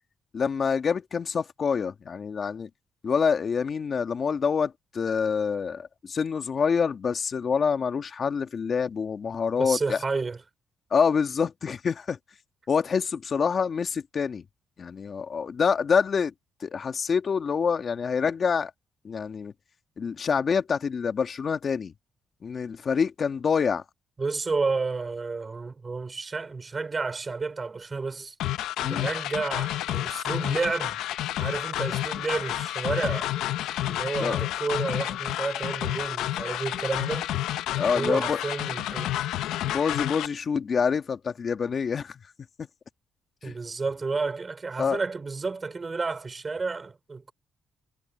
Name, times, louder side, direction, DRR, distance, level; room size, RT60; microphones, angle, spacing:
voice 1, 0.3-2.7 3.0-10.0 10.9-12.2 12.7-14.4 14.8-16.3 16.6-18.7 19.0-19.5 20.0-21.9 22.4-23.8 28.8-29.1 34.2-34.4 37.7-38.4 39.6-42.2 42.6-42.7 43.4-43.6 44.8-45.0, left 6 dB, 45° left, 1.9 m, -26 dB
voice 2, 9.6-10.4 24.2-28.3 28.8-31.0 31.4-33.3 33.9-37.3 37.9-39.1 43.4-47.3, right 4 dB, 30° right, 4.6 m, -31 dB
sound 1, 28.4-40.3, left 14 dB, 90° left, 1.0 m, -30 dB
cardioid pair, 90°, 0 cm